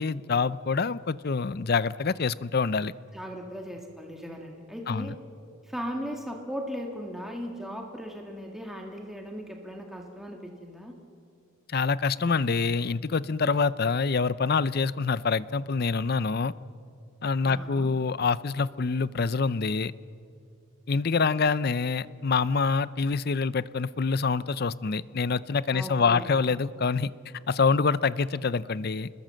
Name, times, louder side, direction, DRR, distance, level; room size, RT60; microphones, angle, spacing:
voice 1, 0.0-2.9 4.9-5.2 11.7-16.5 17.2-19.9 20.9-27.1 27.5-29.1, left 4 dB, 45° left, 17 dB, 0.5 m, -26 dB
voice 2, 3.1-5.1 5.6-10.9 17.4-17.9 25.7-26.3, equal, ahead, 1 dB, 1.8 m, -37 dB
28.5 x 20.5 x 7.7 m, 2.5 s
head